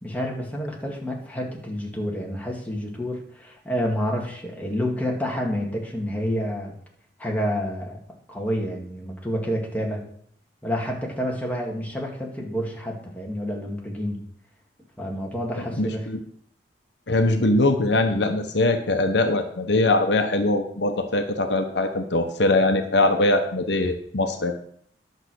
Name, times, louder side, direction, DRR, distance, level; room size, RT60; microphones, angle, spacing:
voice 1, 0.0-6.7 7.2-8.0 8.3-10.0 10.6-14.2 15.0-16.1, equal, 10° left, -1 dB, 2.1 m, -29 dB
voice 2, 15.6-16.2 17.1-24.5, left 2 dB, 70° left, 6 dB, 1.0 m, -22 dB
11.0 x 6.6 x 6.2 m, 0.63 s
head